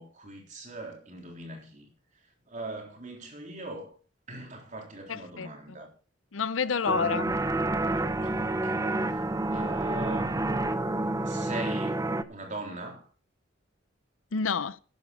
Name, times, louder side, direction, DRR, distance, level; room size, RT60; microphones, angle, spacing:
voice 1, 0.0-1.9 2.5-3.9 4.3-5.9 8.2-9.2 9.5-10.4 11.2-13.1, right 2 dB, 40° right, 3.7 m, -40 dB
voice 2, 5.1-5.8 6.3-7.3 14.3-14.8, left 5 dB, 85° left, 0.7 m, -29 dB
sound 1, 6.9-12.2, right 2 dB, 15° right, 0.7 m, -29 dB
12.0 x 9.5 x 4.9 m
head